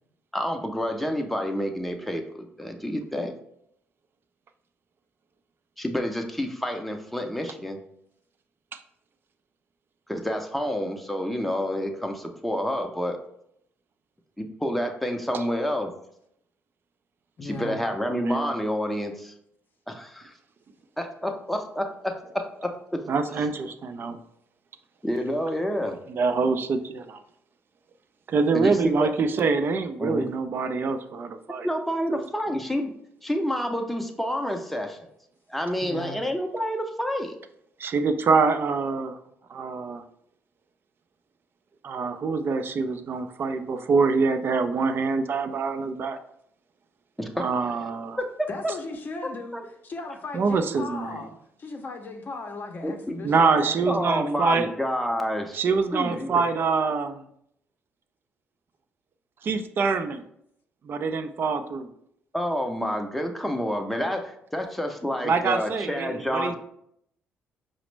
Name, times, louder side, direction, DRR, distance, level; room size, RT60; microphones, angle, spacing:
voice 1, 0.3-3.3 5.8-7.8 10.1-13.2 14.4-15.9 17.4-19.3 19.9-20.3 21.0-23.0 25.0-26.0 28.5-29.1 30.0-30.3 31.6-32.9 33.2-35.0 35.5-37.4 47.2-47.5 48.2-48.3 49.5-49.6 52.8-53.2 53.9-55.6 55.9-56.4 62.3-66.5, equal, 5° left, 4 dB, 0.6 m, -29 dB
voice 2, 17.4-17.8 35.8-36.2 48.5-49.6 49.8-53.9, left 3 dB, 45° left, 4 dB, 0.6 m, -37 dB
voice 3, 18.1-18.5 23.1-24.2 26.1-27.2 28.3-31.7 32.1-32.2 37.8-39.2 39.5-40.0 41.8-46.2 47.4-48.2 50.3-51.2 53.2-54.7 55.5-57.2 59.4-60.2 60.8-61.9 65.2-66.5, right 4 dB, 50° right, 8 dB, 0.4 m, -25 dB
5.0 x 2.0 x 3.2 m, 0.72 s
cardioid pair, 75°, 5 cm